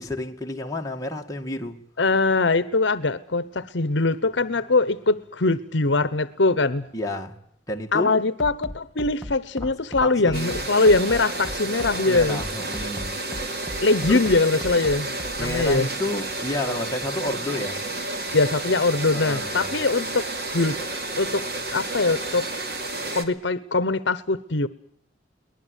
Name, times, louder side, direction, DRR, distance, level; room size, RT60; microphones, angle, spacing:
voice 1, 0.0-1.8 6.9-7.4 7.7-8.1 9.6-9.7 10.0-10.6 11.9-13.2 14.1-14.2 15.4-17.8 19.1-19.8, left 1 dB, 20° left, 2.0 m, -30 dB
voice 2, 2.0-6.8 7.9-12.4 13.8-15.1 15.4-15.9 18.3-20.8 21.2-22.5 23.1-24.7, left 3 dB, 65° left, 1.0 m, -22 dB
Bass drum, 8.4-15.8, equal, ahead, 1.8 m, -36 dB
sound 1, 10.3-23.2, right 2 dB, 55° right, 2.9 m, -31 dB
23.5 x 19.5 x 8.2 m
head